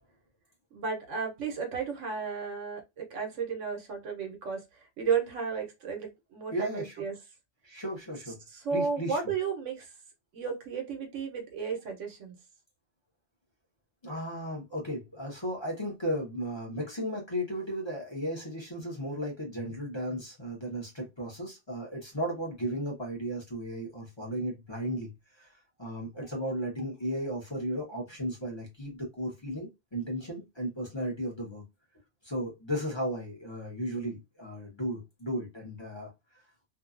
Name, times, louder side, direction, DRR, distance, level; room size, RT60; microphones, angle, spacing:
voice 1, 0.7-7.1 8.5-9.9 10.3-12.4, right 6 dB, 85° right, 1.2 m, -33 dB
voice 2, 6.5-7.0 7.6-8.4 8.7-9.2 14.0-25.1 25.4-31.6 32.2-36.4, equal, 25° left, 0.8 m, -35 dB
2.7 x 2.3 x 2.4 m
omnidirectional pair, 1.2 m